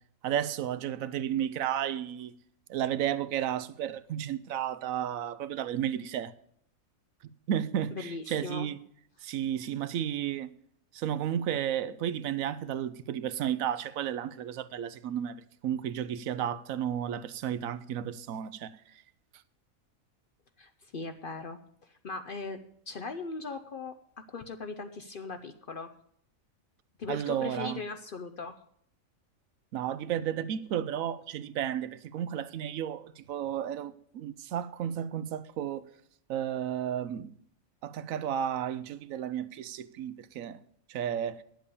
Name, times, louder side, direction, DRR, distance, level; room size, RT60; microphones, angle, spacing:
voice 1, 0.2-2.3 2.7-6.3 7.5-8.8 9.2-10.5 10.9-19.0 27.1-27.8 29.7-35.9 36.3-37.3 37.8-40.6 40.9-41.4, right 10 dB, 75° right, 1.0 m, -33 dB
voice 2, 7.9-8.7 20.6-22.6 22.9-23.9 24.3-25.9 27.0-28.5, left 4 dB, 50° left, 0.6 m, -39 dB
10.0 x 7.7 x 6.8 m
omnidirectional pair, 1.4 m